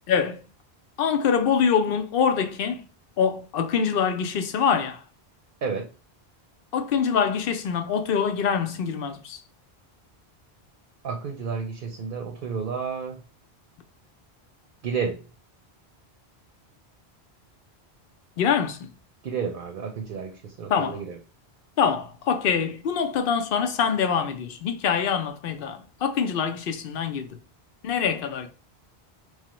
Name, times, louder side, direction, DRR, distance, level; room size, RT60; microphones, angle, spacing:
voice 1, 0.1-0.4 1.0-2.8 3.2-5.0 6.7-9.4 18.4-18.9 20.7-21.0 21.8-27.4 27.8-28.5, left 7 dB, 65° left, 0.7 m, -24 dB
voice 2, 11.0-13.2 14.8-15.2 19.2-21.2, right 6 dB, 60° right, 0.8 m, -31 dB
3.1 x 2.1 x 2.9 m
omnidirectional pair, 1.1 m